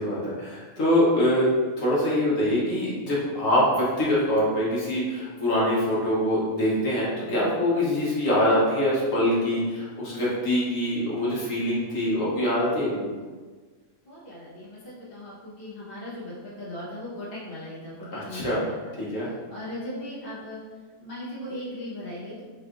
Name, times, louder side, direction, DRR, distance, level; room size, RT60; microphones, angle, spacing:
voice 1, 0.0-1.5 1.8-13.2 18.1-18.6 19.0-19.3, left 1 dB, 70° left, -7 dB, 1.4 m, -24 dB
voice 2, 12.9-13.3 14.0-20.6 21.0-22.4, left 1 dB, 45° left, -8 dB, 1.2 m, -38 dB
4.5 x 3.2 x 2.5 m, 1.4 s
omnidirectional pair, 1.4 m